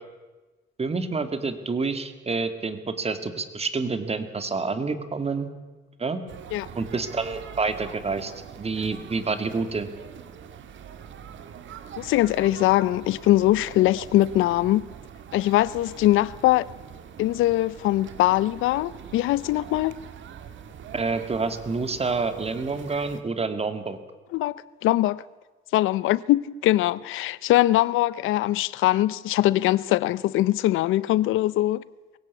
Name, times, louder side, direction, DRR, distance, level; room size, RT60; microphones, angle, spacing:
voice 1, 0.8-5.5 6.0-6.2 6.8-9.9 20.9-24.0, right 4 dB, 30° right, 2.3 m, -28 dB
sound 1, 6.3-23.2, right 8 dB, 70° right, 1.9 m, -43 dB
voice 2, 12.0-14.9 15.3-16.7 17.2-20.0 24.3-25.2 25.7-31.8, left 15 dB, 90° left, 0.6 m, -22 dB
21.5 x 17.0 x 8.3 m
cardioid pair, 90°, 20 cm